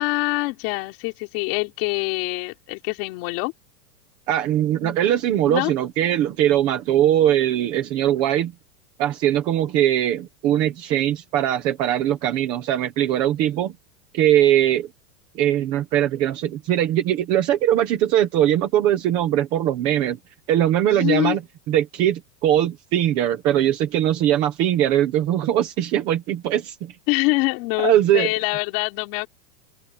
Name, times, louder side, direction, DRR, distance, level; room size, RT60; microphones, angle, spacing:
voice 1, 0.0-3.5 4.8-5.0 5.5-5.7 20.8-21.4 27.1-29.3, left 26 dB, 35° left, 4.1 m, -25 dB
voice 2, 4.3-8.5 9.0-13.7 14.1-14.9 15.3-20.2 20.5-21.4 21.7-26.9 27.8-28.3, right 11 dB, 10° right, 0.5 m, -21 dB
open air
supercardioid pair, 175°, 49 cm